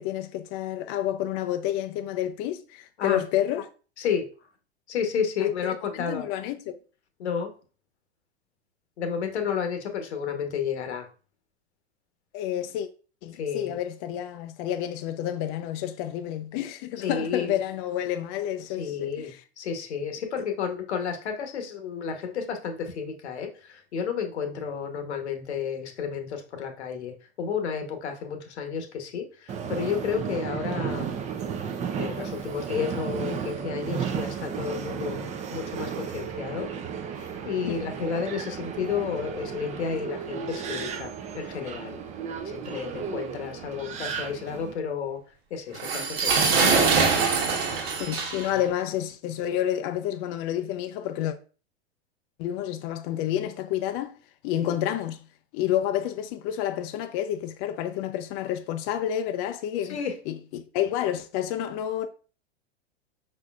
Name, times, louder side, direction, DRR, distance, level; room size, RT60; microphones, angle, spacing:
voice 1, 0.0-3.7 5.4-6.8 12.3-12.9 13.2-19.4 37.7-37.8 48.0-51.4 52.4-54.2 54.4-55.2 55.5-60.0 60.3-62.1, left 11 dB, 40° left, 0.4 m, -29 dB
voice 2, 4.0-4.3 4.9-6.3 7.2-7.5 9.0-11.1 13.3-13.8 17.0-17.5 18.8-31.1 31.9-36.7 37.1-42.0 42.4-45.2 45.5-46.7 48.6-48.7 54.6-54.7 59.9-60.1, left 7 dB, 80° left, 1.1 m, -31 dB
Subway metro underground, 29.5-44.7, right 7 dB, 20° right, 0.5 m, -34 dB
sound 1, 45.7-48.6, right 5 dB, 70° right, 1.2 m, -23 dB
5.1 x 4.3 x 2.4 m
hypercardioid pair, 110°, 33 cm